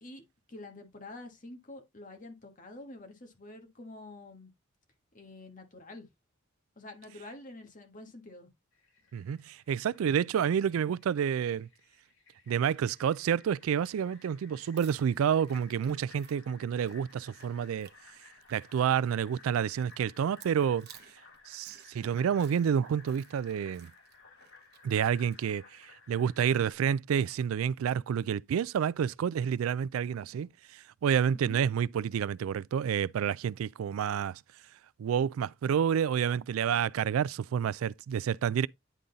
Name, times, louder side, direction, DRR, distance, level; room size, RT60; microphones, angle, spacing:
voice 1, 0.0-4.5 5.1-6.1 6.8-8.5 31.3-31.6, left 2 dB, 40° left, 1.5 m, -47 dB
Fill (with liquid), 8.7-26.7, left 4 dB, 80° left, 5.0 m, -58 dB
voice 2, 9.1-11.7 12.5-17.9 18.5-20.9 21.5-23.9 24.8-34.4 35.0-38.7, right 8 dB, 90° right, 0.3 m, -29 dB
sound 1, 14.6-25.5, right 10 dB, 50° right, 0.9 m, -59 dB
10.0 x 3.9 x 3.9 m
head